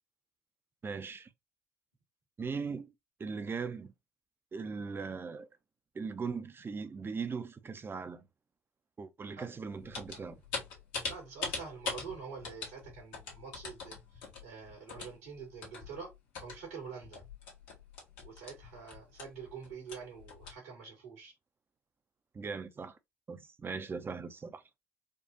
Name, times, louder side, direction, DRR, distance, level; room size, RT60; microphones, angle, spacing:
voice 1, 0.8-1.3 2.4-2.9 3.2-3.9 4.5-5.5 5.9-8.3 9.0-10.4 22.3-23.0 23.3-24.6, right 5 dB, 30° right, 0.7 m, -39 dB
sound 1, 9.8-16.7 17.0-20.5, left 4 dB, 70° left, 1.4 m, -42 dB
voice 2, 11.0-16.1 16.4-17.2 18.2-21.3, right 5 dB, 85° right, 2.1 m, -46 dB
4.4 x 2.4 x 2.8 m
hypercardioid pair, 60°, 7 cm